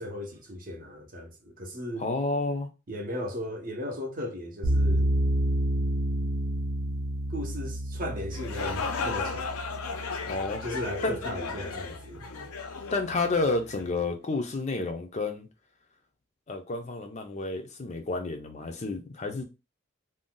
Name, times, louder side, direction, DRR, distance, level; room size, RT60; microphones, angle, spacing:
voice 1, 0.0-2.1 2.9-5.1 7.3-9.8 10.6-12.3, left 1 dB, 40° right, 0.7 m, -36 dB
voice 2, 2.0-2.7 10.2-10.6 11.0-11.4 12.9-15.5 16.5-19.4, left 3 dB, 35° left, 0.4 m, -30 dB
sound 1, 4.6-11.7, equal, 85° right, 0.8 m, -29 dB
sound 2, 8.2-13.9, left 4 dB, 90° left, 0.5 m, -35 dB
2.5 x 2.2 x 3.7 m
head